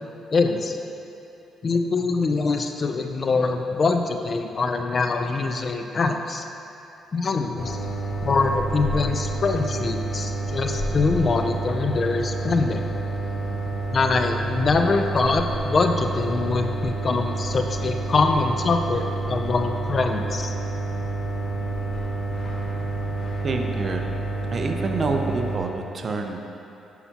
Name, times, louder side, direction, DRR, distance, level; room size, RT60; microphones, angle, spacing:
voice 1, 0.3-0.8 1.6-6.4 7.1-7.8 8.2-12.9 13.9-20.5, left 4 dB, 40° left, 5 dB, 0.5 m, -24 dB
sound 1, 7.6-25.6, right 2 dB, 60° left, 1.1 m, -29 dB
voice 2, 23.4-24.1 24.5-26.4, right 3 dB, 45° right, 4 dB, 0.6 m, -27 dB
9.7 x 5.7 x 2.9 m, 2.9 s
cardioid pair, 90°, 0 cm